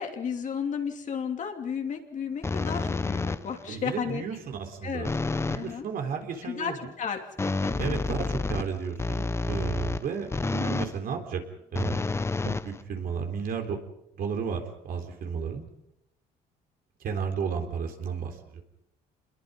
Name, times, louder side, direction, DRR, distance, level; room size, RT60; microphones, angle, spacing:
voice 1, 0.0-4.2 4.8-5.1 5.5-5.8 6.4-8.0, left 7 dB, 45° left, 4 dB, 2.9 m, -33 dB
sound 1, 2.4-3.7 5.0-5.7 7.4-11.0 11.7-13.2, left 3 dB, 15° left, 0.8 m, -29 dB
voice 2, 3.7-5.1 5.5-6.7 7.8-11.4 11.7-12.0 12.4-13.8 14.2-15.7 17.0-18.6, right 6 dB, 60° right, 4 dB, 3.7 m, -33 dB
27.0 x 21.5 x 5.4 m, 0.80 s
cardioid pair, 110°, 17 cm